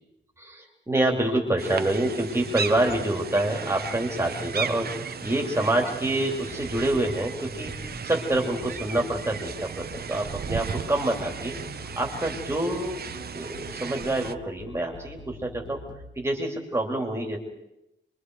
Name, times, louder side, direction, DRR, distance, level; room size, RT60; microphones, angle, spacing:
voice 1, 0.4-7.7 8.0-11.6 12.0-13.0 13.3-15.8 16.1-17.4, right 1 dB, 10° right, 1 dB, 3.2 m, -27 dB
sound 1, 1.1-2.0 2.3-5.8 6.0-16.1, left 1 dB, 20° left, 2.8 m, -44 dB
sound 2, 1.6-14.3, right 6 dB, 50° right, 0.9 m, -36 dB
30.0 x 23.0 x 4.8 m, 0.88 s
wide cardioid pair, 150°, 21 cm